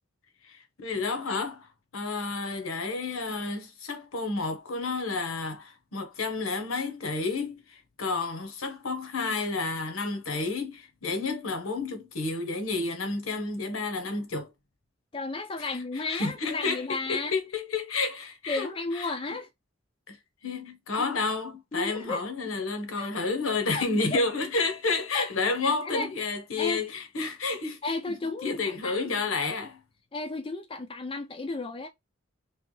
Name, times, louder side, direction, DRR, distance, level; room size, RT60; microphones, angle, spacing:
voice 1, 0.4-14.5 15.6-19.1 20.1-20.2 20.4-27.8 28.4-29.8, left 3 dB, 85° left, 1.1 m, -30 dB
voice 2, 15.1-17.3 18.5-19.5 21.0-21.1 21.7-22.3 23.0-23.1 23.7-23.8 24.1-24.2 25.1-25.3 25.6-26.8 27.8-29.1 30.1-31.9, left 3 dB, 25° left, 0.4 m, -33 dB
3.3 x 3.1 x 3.1 m
head